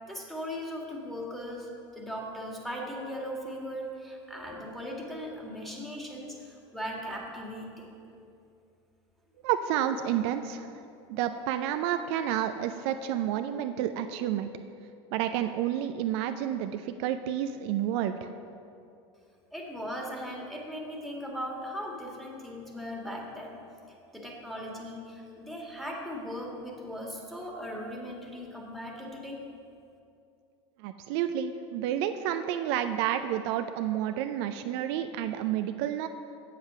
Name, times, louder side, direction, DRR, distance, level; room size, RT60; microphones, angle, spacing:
voice 1, 0.1-8.0 19.5-23.6 24.1-29.4, equal, ahead, -2 dB, 1.9 m, -38 dB
voice 2, 9.4-10.7 11.1-14.5 15.1-18.3 30.8-36.1, right 10 dB, 65° right, 8 dB, 0.5 m, -30 dB
7.9 x 7.5 x 5.8 m, 2.6 s
hypercardioid pair, 90°, 15 cm